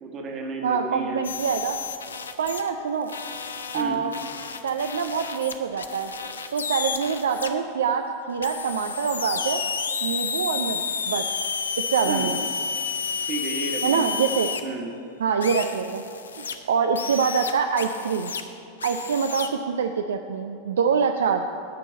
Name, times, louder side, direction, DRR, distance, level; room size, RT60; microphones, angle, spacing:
voice 1, 0.0-1.2 3.7-4.0 12.1-12.4 13.3-14.2 14.6-14.9, right 4 dB, 30° right, 2 dB, 1.4 m, -32 dB
voice 2, 0.6-1.8 2.4-3.1 3.7-4.1 4.6-6.1 6.5-9.6 10.0-11.2 11.8-12.4 13.8-14.5 15.2-16.0 16.4-18.3 18.8-21.5, right 6 dB, 65° right, 6 dB, 0.4 m, -25 dB
sound 1, 1.2-2.7 3.1-7.5 8.4-14.6 15.4-16.5 17.0-18.4 18.8-19.5, left 6 dB, 70° left, 0.5 m, -31 dB
11.5 x 4.5 x 7.7 m, 2.4 s
figure-of-eight pair, 90°, 0 cm